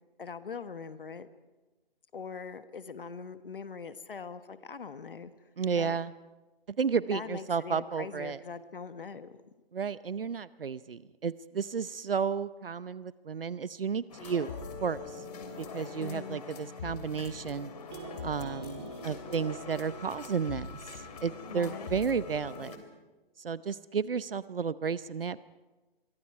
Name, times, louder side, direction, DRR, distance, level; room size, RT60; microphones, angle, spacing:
voice 1, 0.2-1.3 2.1-5.3 5.7-6.0 7.1-9.3 16.0-16.4 21.5-21.9, left 5 dB, 65° left, 12 dB, 1.3 m, -42 dB
voice 2, 5.6-6.1 6.8-8.4 9.7-15.2 15.6-17.7 18.2-20.8 21.2-22.8 23.4-25.4, right 6 dB, 70° right, 17 dB, 0.8 m, -32 dB
sound 1, 14.1-22.8, left 4 dB, 40° left, 3.0 m, -43 dB
sound 2, 17.9-22.0, right 4 dB, 25° right, 1.9 m, -48 dB
27.0 x 23.0 x 4.8 m, 1.2 s
figure-of-eight pair, 145°, 30 cm